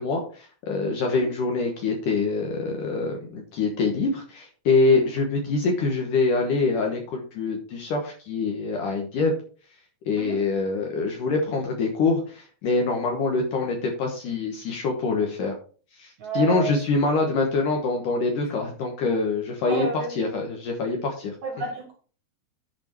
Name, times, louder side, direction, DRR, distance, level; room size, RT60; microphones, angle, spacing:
voice 1, 0.0-9.3 10.1-15.6 16.0-21.3, left 3 dB, 65° left, 2 dB, 2.3 m, -25 dB
voice 2, 16.2-16.8 19.6-20.2 21.4-21.9, right 4 dB, 60° right, 2 dB, 2.2 m, -31 dB
11.0 x 5.1 x 4.5 m, 0.40 s
omnidirectional pair, 5.0 m